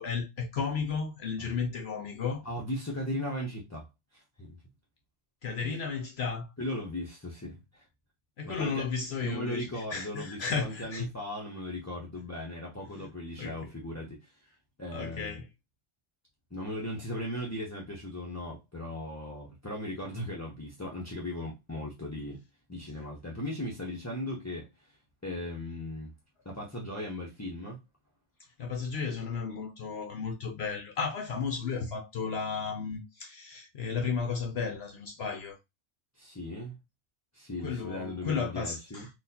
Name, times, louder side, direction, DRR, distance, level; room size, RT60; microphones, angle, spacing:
voice 1, 0.0-2.4 5.4-6.5 8.4-11.1 13.4-13.6 14.9-15.5 28.6-35.6 37.6-39.1, left 5 dB, 60° left, 0.7 m, -34 dB
voice 2, 2.4-3.9 4.1-4.6 5.6-5.7 6.6-7.8 8.4-8.9 9.2-14.3 14.8-15.4 16.5-22.4 22.7-25.0 25.2-26.1 26.4-27.8 36.2-36.7 37.3-39.1, left 1 dB, 20° left, 0.4 m, -37 dB
4.0 x 2.4 x 2.7 m
omnidirectional pair, 1.5 m